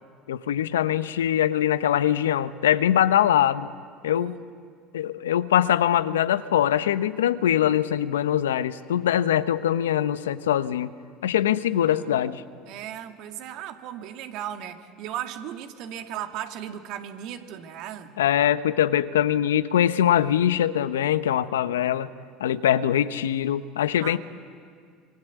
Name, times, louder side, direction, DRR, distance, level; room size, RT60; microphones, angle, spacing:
voice 1, 0.3-3.7 4.0-4.4 4.9-10.9 11.2-12.4 18.2-22.1 22.4-24.2, left 10 dB, 85° left, 14 dB, 0.9 m, -22 dB
voice 2, 4.0-4.5 11.7-12.3 12.7-18.2 24.0-24.2, right 10 dB, 65° right, 6 dB, 2.0 m, -37 dB
26.5 x 25.0 x 8.2 m, 2.1 s
hypercardioid pair, 75°, 0 cm